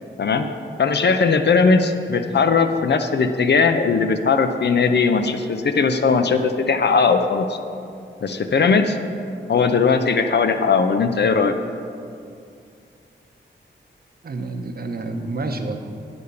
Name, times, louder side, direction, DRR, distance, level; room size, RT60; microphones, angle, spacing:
voice 1, 0.8-7.6 8.2-9.0 9.5-11.5, left 5 dB, 60° left, 8 dB, 0.6 m, -18 dB
voice 2, 14.2-15.8, right 3 dB, 50° right, 5 dB, 0.8 m, -28 dB
9.8 x 5.1 x 6.9 m, 2.5 s
wide cardioid pair, 95°, 20 cm